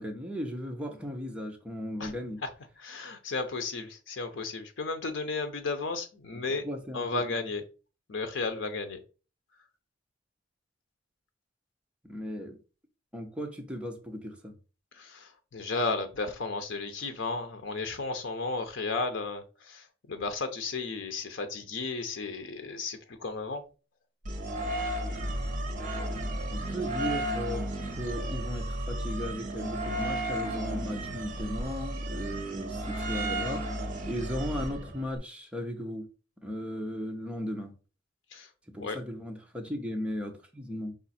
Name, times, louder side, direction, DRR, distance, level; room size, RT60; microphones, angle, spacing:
voice 1, 0.0-2.4 6.6-7.2 12.0-12.6 13.1-14.5 26.5-27.6 28.0-33.7 34.0-36.1 36.4-37.7 38.7-40.9, equal, 5° right, 0.8 m, -36 dB
voice 2, 2.8-6.6 6.9-7.6 8.1-9.0 14.9-23.6 38.3-38.5 38.8-39.0, left 3 dB, 80° left, 0.7 m, -34 dB
sound 1, 24.2-35.2, right 1 dB, 45° right, 0.9 m, -33 dB
5.1 x 2.5 x 4.2 m
head